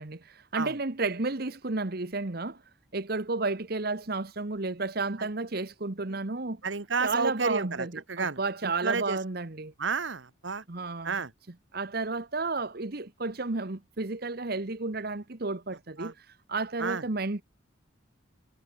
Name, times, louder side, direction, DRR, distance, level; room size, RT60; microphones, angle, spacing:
voice 1, 0.0-2.6 2.9-6.6 7.0-9.7 10.7-11.2 11.7-17.4, right 3 dB, 50° right, 1.2 m, -32 dB
voice 2, 6.6-9.2 9.8-10.6 11.0-11.3 16.0-16.1 16.8-17.0, right 4 dB, 70° right, 1.3 m, -31 dB
head